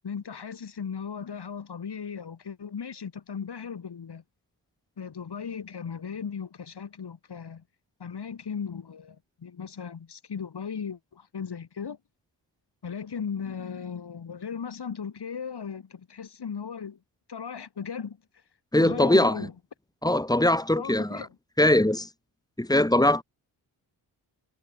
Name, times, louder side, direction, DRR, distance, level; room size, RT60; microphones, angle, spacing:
voice 1, 0.0-4.2 5.0-7.6 8.0-12.0 12.8-17.0 17.3-18.2 18.8-19.5 20.5-21.4, left 6 dB, 65° left, 7.7 m, -37 dB
voice 2, 18.7-19.5 20.0-21.3 21.6-22.1 22.6-23.2, left 1 dB, 10° left, 5.0 m, -21 dB
cardioid pair, 70°, 44 cm